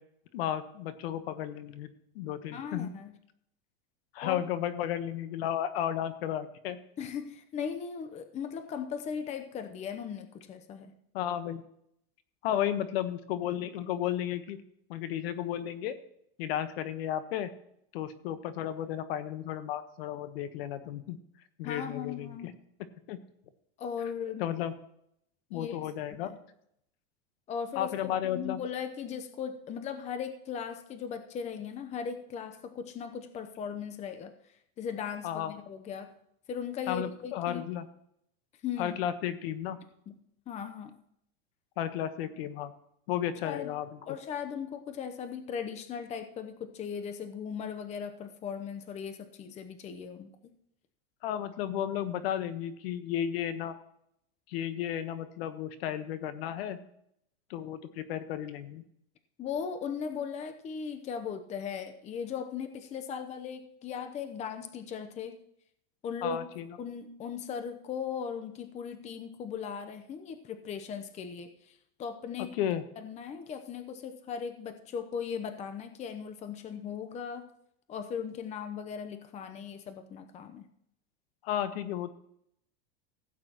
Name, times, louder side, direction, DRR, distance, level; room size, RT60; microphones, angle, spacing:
voice 1, 0.3-1.9 2.1-2.9 4.1-6.8 11.1-11.6 12.4-14.6 14.9-16.0 16.4-17.5 17.9-21.2 21.6-22.5 23.1-23.2 24.4-24.7 25.5-26.3 27.7-28.6 35.2-35.5 36.9-37.9 38.8-39.8 41.8-42.7 43.1-43.9 51.2-53.7 54.5-56.8 57.5-58.8 66.2-66.7 72.6-72.8 81.4-82.1, left 10 dB, 70° left, 11 dB, 1.2 m, -33 dB
voice 2, 2.5-3.2 4.2-4.4 7.0-10.9 21.6-22.5 23.8-24.4 25.5-25.8 26.2-26.4 27.5-34.3 34.8-36.1 36.5-37.6 38.6-39.0 40.1-40.2 40.5-40.9 43.4-43.7 44.1-50.3 59.4-65.4 66.0-66.5 66.8-72.6 73.0-77.5 77.9-80.7, left 7 dB, 20° left, 8 dB, 0.8 m, -38 dB
16.0 x 8.7 x 3.0 m, 0.74 s
supercardioid pair, 150°, 32 cm